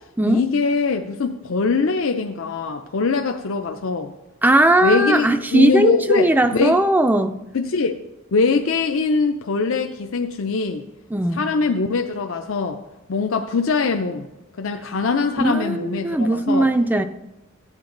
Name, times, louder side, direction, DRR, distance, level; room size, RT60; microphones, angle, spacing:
voice 1, 0.2-4.1 4.8-6.8 7.5-8.0 8.3-10.9 11.3-12.8 13.1-14.3 14.6-16.7, left 4 dB, 65° left, 5 dB, 0.6 m, -22 dB
voice 2, 4.4-7.4 11.1-11.5 15.4-17.0, right 1 dB, 10° right, 8 dB, 0.4 m, -18 dB
15.0 x 8.9 x 3.9 m, 1.0 s
head